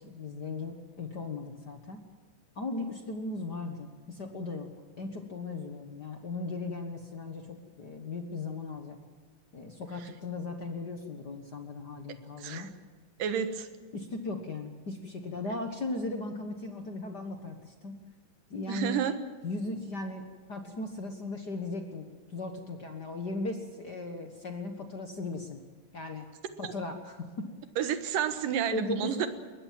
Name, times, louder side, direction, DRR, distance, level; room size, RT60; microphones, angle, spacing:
voice 1, 0.0-2.0 2.5-4.7 5.0-9.0 9.5-12.7 13.9-18.0 18.5-19.0 19.4-25.6 25.9-26.3 26.6-27.5 28.7-29.3, left 3 dB, 55° left, 5 dB, 1.1 m, -37 dB
voice 2, 12.4-12.7 13.2-13.7 18.7-19.2 26.6-26.7 27.8-29.3, right 8 dB, 70° right, 10 dB, 2.9 m, -30 dB
22.0 x 20.0 x 7.6 m, 1.5 s
omnidirectional pair, 4.1 m